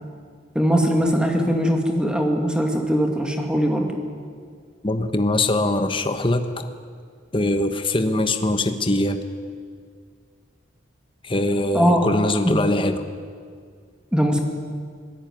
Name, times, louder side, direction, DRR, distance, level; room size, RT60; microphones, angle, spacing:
voice 1, 0.5-4.0 11.7-12.0 12.4-12.6 14.1-14.4, equal, 5° right, 3 dB, 2.3 m, -20 dB
voice 2, 4.8-6.7 7.3-9.2 11.2-13.0, left 1 dB, 25° left, 8 dB, 1.2 m, -22 dB
26.5 x 17.0 x 9.3 m, 2.1 s
head